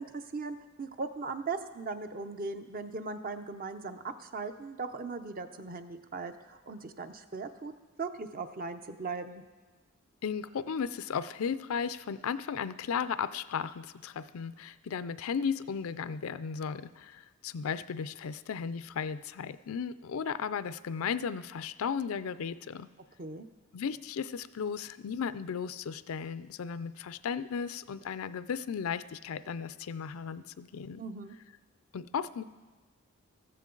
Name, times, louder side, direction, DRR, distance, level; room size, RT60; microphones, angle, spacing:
voice 1, 0.0-7.7 8.0-9.4 23.2-23.5 31.0-31.4, right 4 dB, 40° right, 9 dB, 0.7 m, -38 dB
voice 2, 10.2-22.9 23.7-31.0 31.9-32.4, left 6 dB, 75° left, 15 dB, 0.4 m, -35 dB
14.5 x 14.0 x 3.9 m, 1.3 s
head